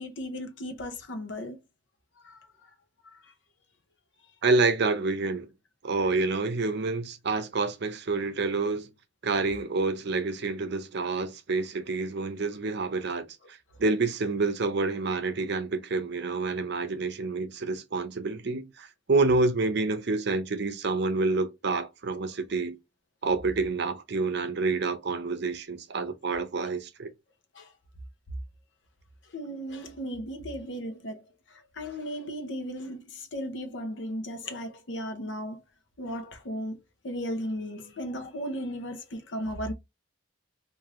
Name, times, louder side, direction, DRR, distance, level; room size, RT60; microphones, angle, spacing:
voice 1, 0.0-1.6 2.2-2.4 3.0-3.2 27.5-27.7 29.3-31.2 31.5-35.6 36.0-36.8 37.0-39.7, equal, 70° left, 0.8 m, -36 dB
voice 2, 4.4-5.5 5.8-8.9 9.2-22.8 23.2-27.1, right 3 dB, 65° right, 0.6 m, -28 dB
3.3 x 2.6 x 3.6 m
head